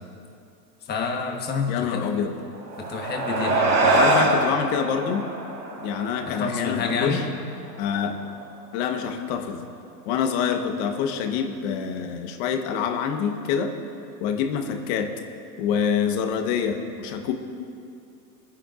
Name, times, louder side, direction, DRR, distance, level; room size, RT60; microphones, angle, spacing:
voice 1, 0.9-2.0 2.8-4.0 6.3-7.2, left 5 dB, 20° left, 2 dB, 1.3 m, -28 dB
voice 2, 1.7-2.3 3.8-5.3 5.8-7.2 7.8-8.2 8.7-9.6 10.1-13.7 14.2-15.1 15.6-17.3, left 7 dB, 40° left, 5 dB, 1.2 m, -26 dB
sound 1, 2.5-7.3, right 2 dB, 90° right, 3.8 m, -24 dB
29.5 x 9.9 x 2.5 m, 2.5 s
hypercardioid pair, 135°, 49 cm